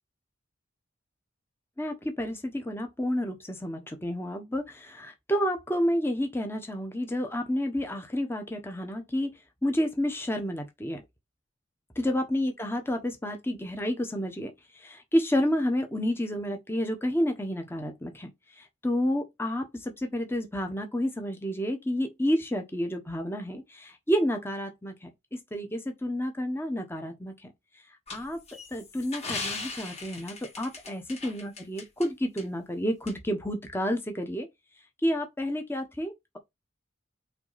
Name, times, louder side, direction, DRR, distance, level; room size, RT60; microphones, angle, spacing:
voice 1, 1.8-9.3 9.6-11.0 11.9-25.1 25.5-27.5 28.1-28.4 28.7-34.5 35.0-36.4, equal, 10° left, 1.1 m, -30 dB
sound 1, 28.1-32.1 32.4-32.5 33.1-33.2, left 4 dB, 30° left, 2.3 m, -38 dB
5.9 x 4.1 x 4.1 m
head